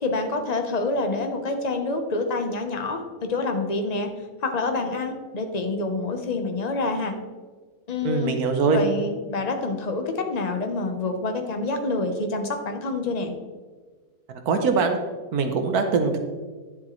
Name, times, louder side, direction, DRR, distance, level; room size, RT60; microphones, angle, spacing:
voice 1, 0.0-4.1 4.4-7.1 7.9-8.3 8.7-13.3, left 3 dB, 35° left, 5 dB, 0.8 m, -27 dB
voice 2, 8.0-8.8 14.5-15.0 15.3-16.2, right 4 dB, 70° right, 6 dB, 1.3 m, -22 dB
10.5 x 7.4 x 3.1 m, 1.4 s
omnidirectional pair, 1.7 m